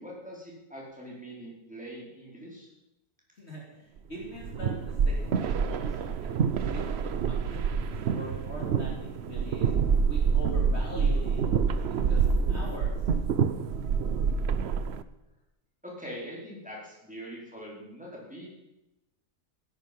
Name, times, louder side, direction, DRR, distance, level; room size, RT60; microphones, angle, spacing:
voice 1, 0.0-2.7 15.8-18.5, equal, 5° right, -4 dB, 4.6 m, -43 dB
voice 2, 3.3-6.4 6.7-9.7 10.1-12.9, equal, 45° left, -2 dB, 3.1 m, -43 dB
sound 1, 4.2-15.0, right 6 dB, 55° right, 0.8 m, -27 dB
17.0 x 11.0 x 5.4 m, 0.93 s
omnidirectional pair, 1.6 m